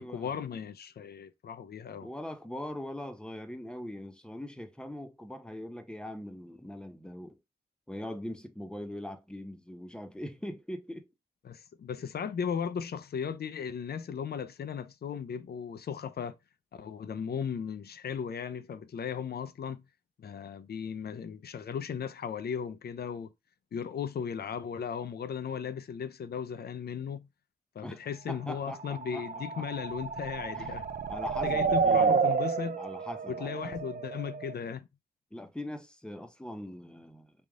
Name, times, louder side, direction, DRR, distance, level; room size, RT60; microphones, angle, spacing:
voice 1, 0.0-2.1 11.4-16.4 16.7-19.8 20.2-23.3 23.7-27.3 27.7-30.8 31.4-32.8 33.3-34.9, left 7 dB, 70° left, 0.5 m, -36 dB
voice 2, 2.0-7.4 7.9-11.1 27.8-28.0 28.3-29.2 29.6-29.7 30.5-30.8 31.1-32.3 32.8-33.7 35.3-37.3, left 1 dB, 5° left, 0.9 m, -41 dB
sound 1, 28.7-34.5, right 5 dB, 55° right, 0.5 m, -30 dB
3.4 x 2.5 x 3.6 m
cardioid pair, 45°, 17 cm